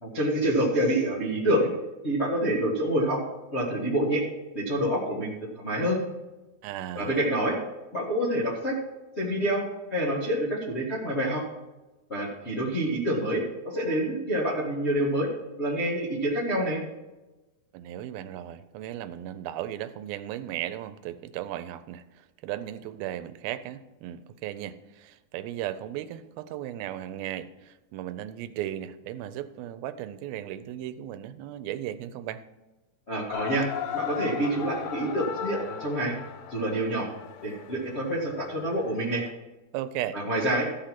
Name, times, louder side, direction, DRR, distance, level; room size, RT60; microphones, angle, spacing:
voice 1, 0.0-1.7 2.0-3.2 3.5-4.2 4.5-6.0 6.9-7.6 7.9-8.7 9.2-9.6 9.9-11.4 12.1-15.3 15.6-16.8 33.1-33.7 33.9-36.1 36.5-37.1 37.4-39.2 40.1-40.7, right 1 dB, 45° left, -5 dB, 0.8 m, -27 dB
voice 2, 6.6-7.3 17.7-32.4 39.7-40.2, right 12 dB, 90° right, 12 dB, 2.5 m, -36 dB
sound 1, 33.3-39.3, left 8 dB, 85° left, 2.7 m, -37 dB
14.5 x 5.1 x 5.8 m, 1.1 s
omnidirectional pair, 4.2 m